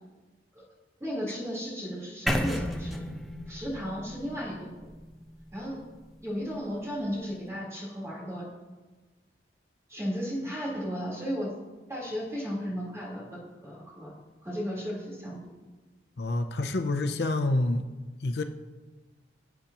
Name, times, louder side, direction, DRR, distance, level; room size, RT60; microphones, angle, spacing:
voice 1, 1.0-3.0 3.5-4.7 5.5-5.8 6.2-8.4 9.9-11.5 11.9-14.1 14.4-15.4, equal, 15° right, -5 dB, 3.8 m, -34 dB
sound 1, 2.3-6.2, equal, ahead, 0.8 m, -34 dB
voice 2, 16.2-17.8 18.2-18.4, left 2 dB, 65° left, 6 dB, 0.6 m, -27 dB
18.5 x 8.3 x 3.0 m, 1.2 s
head